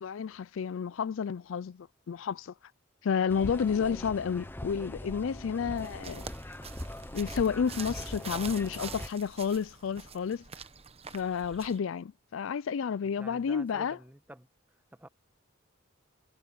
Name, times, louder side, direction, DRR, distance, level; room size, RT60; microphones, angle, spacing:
voice 1, 0.0-2.5 3.0-6.3 7.1-10.4 11.1-14.0, left 6 dB, 70° left, 0.4 m, -31 dB
sound 1, 3.3-9.1, left 1 dB, 10° left, 0.8 m, -41 dB
sound 2, 5.8-11.8, right 6 dB, 30° right, 0.9 m, -46 dB
voice 2, 13.0-14.5 14.9-15.1, right 1 dB, 10° right, 1.3 m, -49 dB
head